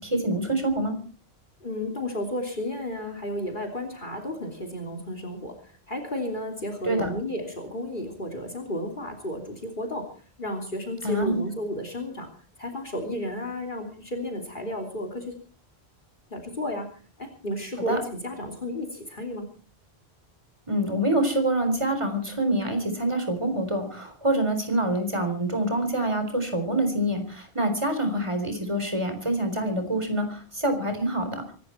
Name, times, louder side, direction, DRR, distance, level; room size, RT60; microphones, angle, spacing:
voice 1, 0.0-0.9 6.9-7.1 11.0-11.4 17.9-18.0 20.7-31.5, right 1 dB, 30° right, 6 dB, 4.0 m, -26 dB
voice 2, 1.6-10.1 10.4-12.3 12.6-15.4 16.3-16.9 17.2-19.4, left 1 dB, 50° left, 3 dB, 3.4 m, -33 dB
25.0 x 12.5 x 4.4 m, 0.41 s
omnidirectional pair, 1.1 m